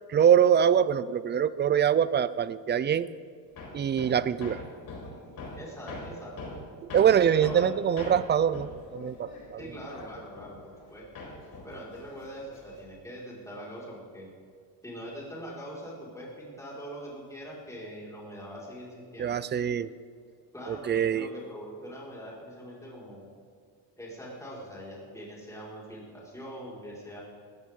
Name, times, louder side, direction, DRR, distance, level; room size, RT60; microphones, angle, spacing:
voice 1, 0.1-3.1 3.7-4.6 6.9-9.6 19.2-19.9 20.7-21.3, right 8 dB, 25° right, 16 dB, 0.3 m, -24 dB
Hammer, 3.6-10.9 11.1-12.9, left 2 dB, 50° left, 4.7 m, -42 dB
voice 2, 5.5-6.5 7.3-7.7 9.6-11.0 11.6-14.3 14.8-19.3 20.5-23.3 24.0-27.2, equal, 5° left, -6 dB, 4.8 m, -42 dB
19.5 x 16.0 x 3.7 m, 2.1 s
cardioid pair, 130°, 46 cm